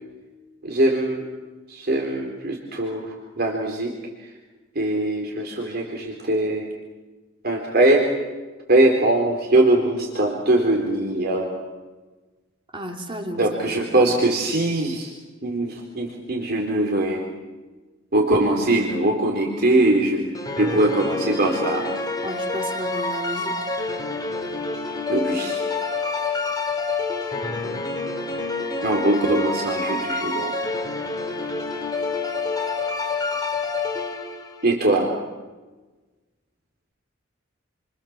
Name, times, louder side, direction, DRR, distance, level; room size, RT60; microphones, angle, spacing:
voice 1, 0.6-1.3 1.7-4.3 4.7-6.7 7.4-8.2 8.7-11.5 13.4-15.1 15.4-17.3 18.1-21.9 25.1-25.6 28.8-30.5 34.6-35.2, right 1 dB, 50° right, 1 dB, 4.1 m, -21 dB
voice 2, 12.7-14.1 22.2-23.7 27.3-27.9, equal, 25° right, 3 dB, 2.8 m, -34 dB
sound 1, 20.3-34.7, left 3 dB, 20° left, 3.6 m, -27 dB
30.0 x 26.0 x 7.4 m, 1.2 s
head